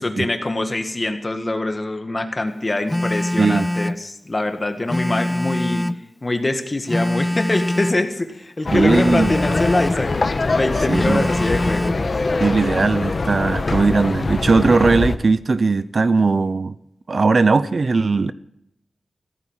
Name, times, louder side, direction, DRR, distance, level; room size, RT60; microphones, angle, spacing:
voice 1, 0.0-5.9 6.2-11.9, left 2 dB, 25° left, 1.9 m, -24 dB
Telephone, 2.9-4.0 4.9-6.0 6.9-8.0 8.9-10.0 10.9-12.0, left 1 dB, 10° left, 0.5 m, -23 dB
voice 2, 3.4-3.7 8.7-9.3 10.9-11.3 12.4-16.7 17.1-18.3, right 4 dB, 50° right, 0.6 m, -18 dB
sound 1, 8.7-15.2, left 3 dB, 45° left, 1.1 m, -23 dB
15.5 x 14.0 x 5.7 m
wide cardioid pair, 135°, 0 cm